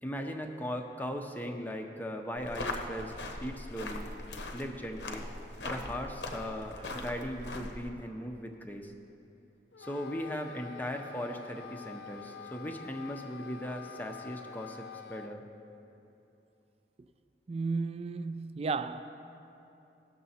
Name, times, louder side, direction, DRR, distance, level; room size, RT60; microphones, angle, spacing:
voice 1, 0.0-3.1 3.4-4.1 4.5-5.3 5.6-8.9 9.8-15.4, equal, 10° left, 0.6 m, -38 dB
sound 1, 2.4-7.9, left 2 dB, 90° left, 0.9 m, -40 dB
Wind instrument woodwind instrument, 9.7-15.4, left 7 dB, 65° left, 0.4 m, -47 dB
voice 2, 17.5-19.0, right 4 dB, 35° right, 0.3 m, -33 dB
16.5 x 6.8 x 4.1 m
head